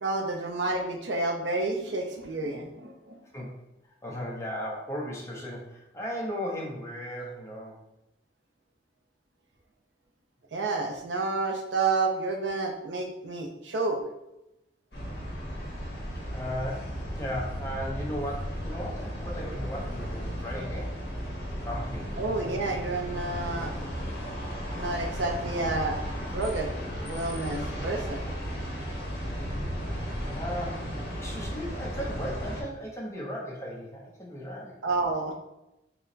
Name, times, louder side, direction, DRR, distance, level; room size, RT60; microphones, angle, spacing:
voice 1, 0.0-3.2 10.5-14.0 22.2-23.7 24.7-26.0 26.3-26.7 27.0-28.3 34.8-35.3, right 3 dB, 85° right, 3 dB, 0.6 m, -30 dB
voice 2, 4.0-7.8 15.2-15.3 16.3-21.0 21.6-22.1 30.3-34.8, equal, 15° left, -3 dB, 0.8 m, -36 dB
sound 1, 14.9-32.6, equal, 60° left, 1.2 m, -35 dB
4.4 x 2.1 x 3.9 m, 0.89 s
head